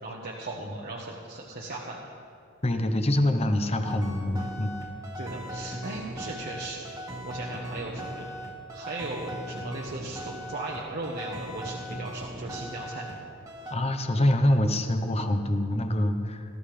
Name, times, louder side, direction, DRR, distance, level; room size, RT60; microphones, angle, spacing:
voice 1, 0.0-2.0 5.2-6.8 7.2-8.3 8.7-13.2, right 2 dB, 50° right, -3 dB, 1.2 m, -37 dB
voice 2, 2.6-4.7 13.7-16.4, left 1 dB, 30° left, 7 dB, 0.9 m, -25 dB
sound 1, 3.8-13.2 13.5-13.7, right 1 dB, 15° right, 1.7 m, -38 dB
19.5 x 13.5 x 3.4 m, 2.5 s
head